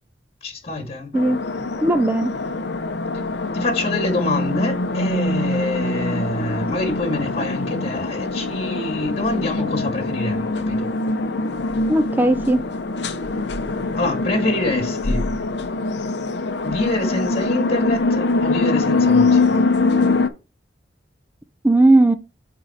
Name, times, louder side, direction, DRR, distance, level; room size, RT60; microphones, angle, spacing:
voice 1, 0.4-1.1 3.5-10.9 13.9-15.3 16.6-19.6, left 2 dB, 35° left, 1.7 m, -26 dB
sound 1, 1.1-20.3, left 3 dB, 70° left, 0.7 m, -23 dB
voice 2, 1.8-2.3 11.9-12.6 21.6-22.1, right 2 dB, 10° right, 0.4 m, -16 dB
9.3 x 3.6 x 4.1 m
head